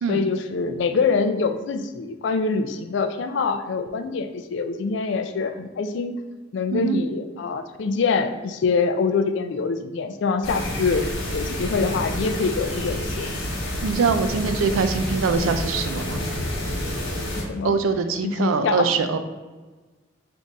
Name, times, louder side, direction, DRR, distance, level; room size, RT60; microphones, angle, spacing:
voice 1, 0.1-6.1 6.5-11.0 11.3-13.3 17.4-17.8 18.2-18.9, left 4 dB, 60° left, 9 dB, 0.3 m, -25 dB
sound 1, 10.4-17.4, left 1 dB, 85° left, 1.1 m, -29 dB
voice 2, 13.8-16.2 17.6-19.2, right 5 dB, 85° right, 9 dB, 0.4 m, -23 dB
3.5 x 2.6 x 4.0 m, 1.3 s
head